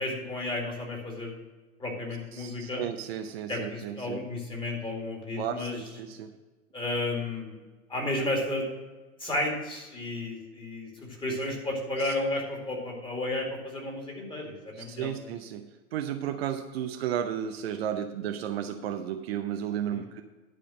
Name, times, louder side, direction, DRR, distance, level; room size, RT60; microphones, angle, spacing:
voice 1, 0.0-1.3 1.8-2.8 3.5-5.8 6.7-7.6 7.9-8.7 9.2-15.1 19.9-20.0, left 1 dB, 10° left, 0 dB, 2.3 m, -32 dB
voice 2, 2.3-4.2 5.4-6.3 12.0-12.1 14.7-20.2, right 9 dB, 45° right, 5 dB, 0.7 m, -33 dB
11.0 x 5.0 x 7.5 m, 1.2 s
figure-of-eight pair, 105°, 43 cm